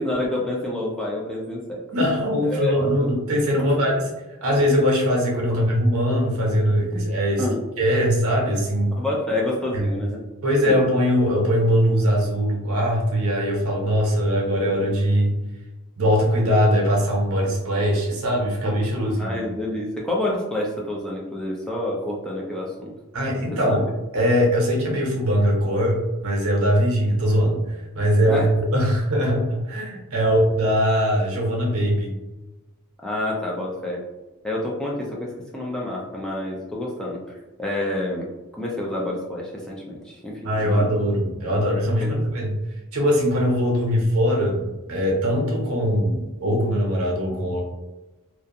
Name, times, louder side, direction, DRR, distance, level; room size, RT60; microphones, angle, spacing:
voice 1, 0.0-1.8 2.4-2.7 3.6-3.8 5.5-5.6 6.9-7.1 7.4-7.6 9.0-10.2 10.7-10.9 19.2-22.9 23.7-23.8 28.2-28.5 30.2-30.4 33.0-34.0 34.4-37.2 37.6-38.3 38.5-40.9 42.0-42.3, left 1 dB, 5° left, -4 dB, 0.3 m, -28 dB
voice 2, 1.9-4.0 4.4-7.5 7.8-8.9 9.7-10.0 10.4-15.3 16.0-19.4 23.1-23.9 24.1-32.1 40.4-42.6 42.9-47.6, equal, 70° right, 0 dB, 0.7 m, -21 dB
2.3 x 2.2 x 2.7 m, 1.1 s
head